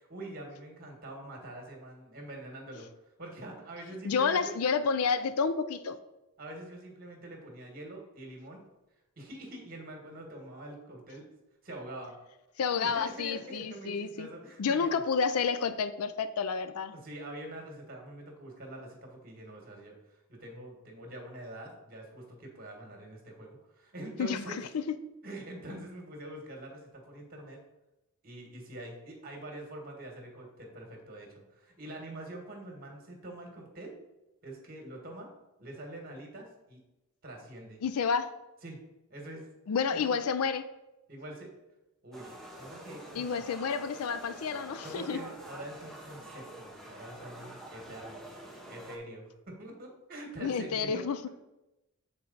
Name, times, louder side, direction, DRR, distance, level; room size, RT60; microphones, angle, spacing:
voice 1, 0.0-2.9 3.2-4.5 6.4-8.6 9.2-11.2 11.6-12.2 12.8-15.0 16.9-24.6 25.2-27.6 28.2-33.9 34.4-35.3 35.6-36.8 37.2-37.8 38.6-38.8 39.1-39.5 39.9-40.1 41.1-41.5 42.0-43.3 44.8-48.3 48.7-51.3, right 1 dB, 40° right, 1 dB, 1.6 m, -45 dB
voice 2, 4.0-6.0 12.6-14.3 14.6-16.9 24.2-24.9 37.8-38.3 39.7-40.6 43.1-45.2 50.4-51.3, left 5 dB, 85° left, 12 dB, 0.4 m, -30 dB
sound 1, 42.1-49.0, right 1 dB, ahead, 0.7 m, -47 dB
7.6 x 4.3 x 4.0 m, 0.95 s
head